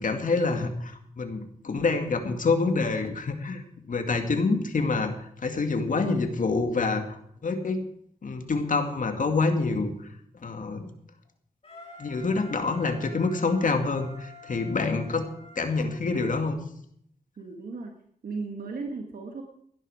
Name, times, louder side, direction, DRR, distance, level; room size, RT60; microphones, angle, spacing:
voice 1, 0.0-7.8 8.2-9.9 10.4-10.9 12.0-15.3 15.6-16.6, left 3 dB, 60° left, 6 dB, 2.2 m, -27 dB
Wind instrument woodwind instrument, 11.6-16.4, left 2 dB, 40° left, 6.1 m, -48 dB
voice 2, 17.4-17.9 18.2-19.4, right 4 dB, 70° right, 3 dB, 1.7 m, -35 dB
16.5 x 11.0 x 5.0 m, 0.67 s
cardioid pair, 75°, 15 cm